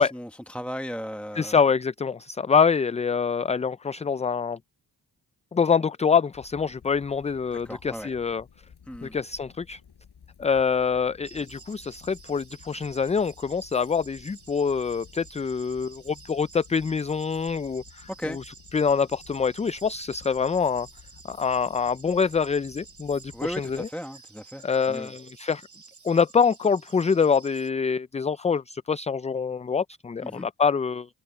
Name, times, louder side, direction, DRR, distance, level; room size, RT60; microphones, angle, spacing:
voice 1, 0.0-1.6 7.5-8.1 8.9-9.2 18.2-18.4 23.3-25.1 30.2-30.5, equal, 5° left, 1.1 m, -36 dB
voice 2, 1.4-4.6 5.5-8.4 9.0-9.8 10.4-18.4 18.7-20.9 21.3-23.9 24.6-25.6 26.0-31.1, left 6 dB, 20° left, 0.3 m, -25 dB
sound 1, 6.3-23.9, left 7 dB, 85° left, 7.4 m, -53 dB
sound 2, 11.2-27.7, right 5 dB, 50° right, 2.7 m, -51 dB
cardioid pair, 55°, 38 cm